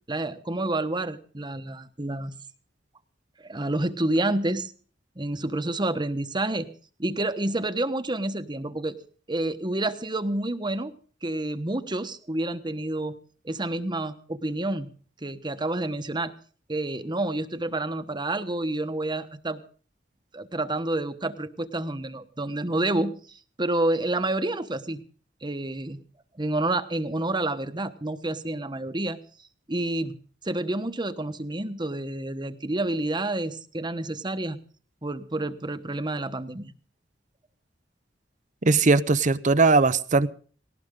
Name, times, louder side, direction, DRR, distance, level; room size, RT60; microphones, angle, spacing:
voice 1, 0.1-2.3 3.4-4.7 5.2-6.7 7.0-9.0 9.3-10.9 11.2-13.2 13.4-14.9 15.2-16.3 16.7-19.6 20.3-25.0 25.4-26.0 26.4-29.2 29.7-30.2 30.4-34.6 35.0-36.7, right 2 dB, 25° right, 10 dB, 1.1 m, -29 dB
voice 2, 38.6-40.3, right 3 dB, 45° right, 14 dB, 0.8 m, -19 dB
19.0 x 18.5 x 3.7 m, 0.43 s
head